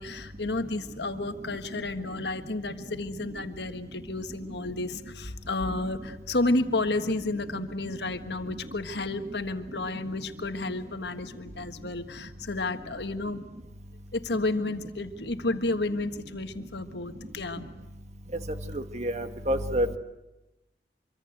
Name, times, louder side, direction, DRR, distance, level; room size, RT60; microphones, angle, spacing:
voice 1, 0.0-13.4 14.1-17.7, left 2 dB, 70° left, 8 dB, 1.5 m, -31 dB
voice 2, 7.0-7.3 18.7-20.0, equal, 40° right, 8 dB, 1.5 m, -29 dB
25.0 x 24.5 x 8.0 m, 0.99 s
head